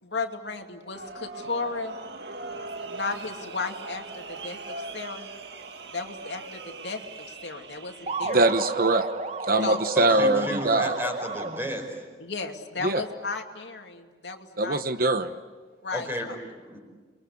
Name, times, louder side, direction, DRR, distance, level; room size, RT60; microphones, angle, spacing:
voice 1, 0.0-2.0 2.9-4.6 4.9-5.3 5.9-8.5 9.6-9.8 12.2-14.8 15.8-16.3, left 4 dB, 85° left, 3 dB, 2.6 m, -34 dB
sound 1, 0.9-8.2, right 3 dB, 75° right, 1.9 m, -40 dB
sound 2, 8.1-11.9, right 3 dB, 40° right, 1.3 m, -33 dB
voice 2, 8.3-9.1 9.5-11.0 12.8-13.0 14.6-15.3, right 2 dB, 55° right, 9 dB, 1.0 m, -22 dB
voice 3, 9.9-11.8 15.9-16.8, equal, 15° right, 2 dB, 5.1 m, -32 dB
29.5 x 22.5 x 8.6 m, 1.4 s
head